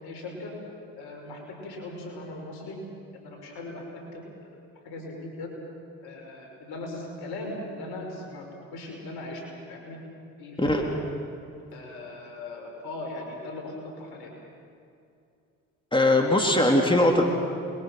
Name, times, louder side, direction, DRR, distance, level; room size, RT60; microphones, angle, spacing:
voice 1, 0.0-0.5 1.0-2.8 3.1-4.6 4.8-5.5 6.0-9.4 9.7-10.0 10.4-10.9 11.7-14.3, left 2 dB, 70° left, 1 dB, 5.6 m, -39 dB
voice 2, 15.9-17.3, left 1 dB, 15° left, 1 dB, 3.7 m, -20 dB
28.0 x 22.0 x 6.0 m, 2.5 s
hypercardioid pair, 50°, 38 cm